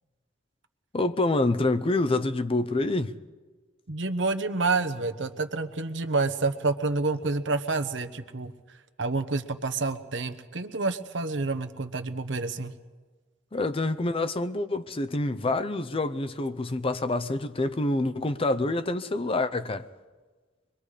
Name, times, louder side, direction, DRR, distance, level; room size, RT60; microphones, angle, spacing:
voice 1, 0.9-3.1 13.5-19.9, left 2 dB, 30° left, 0.6 m, -27 dB
voice 2, 3.9-8.5 9.0-12.7, right 3 dB, 70° right, 1.1 m, -28 dB
24.5 x 22.5 x 5.0 m
head